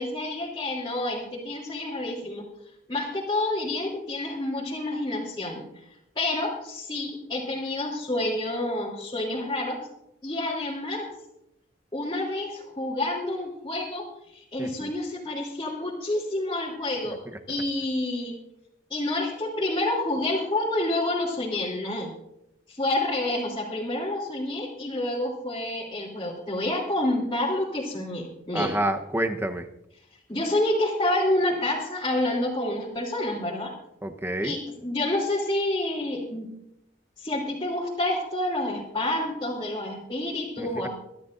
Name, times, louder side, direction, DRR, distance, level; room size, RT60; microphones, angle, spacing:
voice 1, 0.0-2.4 2.9-5.7 6.1-9.8 10.2-11.1 11.9-14.1 14.3-17.2 17.5-18.3 18.9-22.1 22.7-28.8 30.3-33.7 34.4-36.5 37.2-40.9, left 1 dB, 25° left, -7 dB, 3.3 m, -28 dB
voice 2, 14.6-14.9 28.5-29.6 34.0-34.5 40.6-40.7, right 1 dB, 15° right, 6 dB, 1.0 m, -28 dB
24.0 x 13.5 x 2.6 m, 0.80 s
head